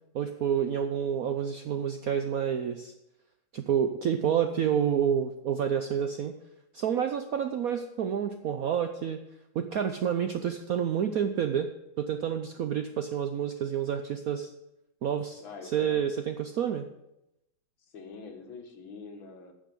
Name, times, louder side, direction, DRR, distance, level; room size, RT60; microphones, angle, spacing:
voice 1, 0.1-2.9 3.5-6.3 6.7-9.2 9.5-11.7 12.0-14.5 15.0-15.4 15.7-16.9, right 8 dB, 70° right, 7 dB, 0.8 m, -29 dB
voice 2, 15.4-16.0 17.8-19.5, left 4 dB, 75° left, 4 dB, 2.3 m, -44 dB
10.0 x 6.5 x 7.8 m, 0.87 s
omnidirectional pair, 2.2 m